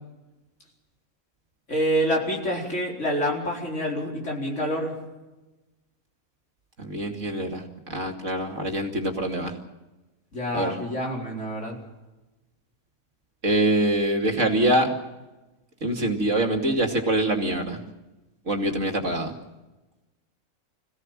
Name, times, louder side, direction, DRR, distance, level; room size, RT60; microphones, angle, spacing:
voice 1, 1.7-5.0 10.3-11.8, equal, 55° left, -1 dB, 4.9 m, -27 dB
voice 2, 6.8-7.6 7.9-9.5 10.5-10.8 13.4-14.9 15.8-17.8 18.5-19.3, right 1 dB, 60° right, 3 dB, 2.9 m, -24 dB
26.5 x 16.5 x 7.6 m, 1.1 s
omnidirectional pair, 1.5 m